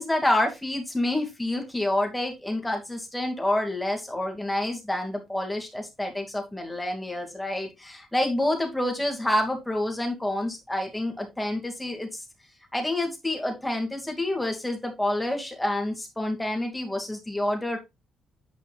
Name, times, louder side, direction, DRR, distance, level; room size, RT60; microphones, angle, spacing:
voice 1, 0.0-12.2 12.7-17.8, left 1 dB, 10° left, 2 dB, 2.4 m, -28 dB
9.2 x 5.2 x 2.4 m, 0.22 s
cardioid pair, 90°, 0 cm